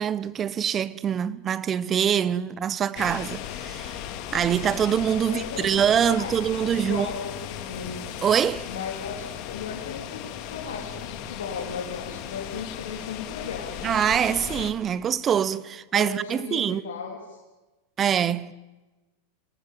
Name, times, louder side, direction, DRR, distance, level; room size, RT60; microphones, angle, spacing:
voice 1, 0.0-4.0 4.3-7.1 8.2-8.7 13.8-16.8 18.0-18.5, right 8 dB, 30° right, 0.9 m, -24 dB
sound 1, 3.0-14.7, left 10 dB, 55° left, 2.4 m, -37 dB
voice 2, 5.2-6.3 6.6-8.0 8.7-13.9 15.9-17.4, left 6 dB, 80° left, 3.7 m, -36 dB
26.0 x 18.5 x 7.6 m
hypercardioid pair, 110°, 0 cm